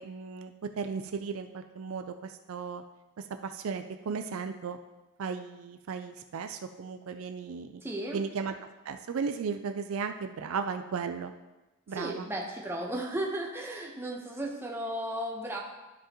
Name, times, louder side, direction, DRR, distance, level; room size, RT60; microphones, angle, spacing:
voice 1, 0.0-2.8 3.2-4.8 5.2-7.8 8.1-8.5 8.9-11.3 11.9-12.3, right 5 dB, 70° right, 8 dB, 0.4 m, -35 dB
voice 2, 7.8-8.2 11.9-15.6, right 1 dB, 10° right, -1 dB, 0.9 m, -35 dB
12.5 x 4.9 x 3.0 m, 1.1 s
head